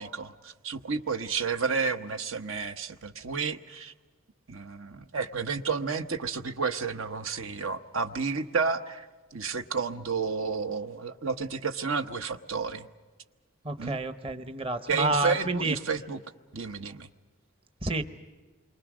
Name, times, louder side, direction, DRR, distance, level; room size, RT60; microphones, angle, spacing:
voice 1, 0.0-3.9 4.5-12.9 13.8-14.0 14.9-16.2 16.5-17.1, right 5 dB, 75° right, 8 dB, 1.1 m, -31 dB
voice 2, 13.6-15.8 17.8-18.0, right 2 dB, 25° right, 9 dB, 0.9 m, -29 dB
28.0 x 24.0 x 6.2 m, 1.3 s
head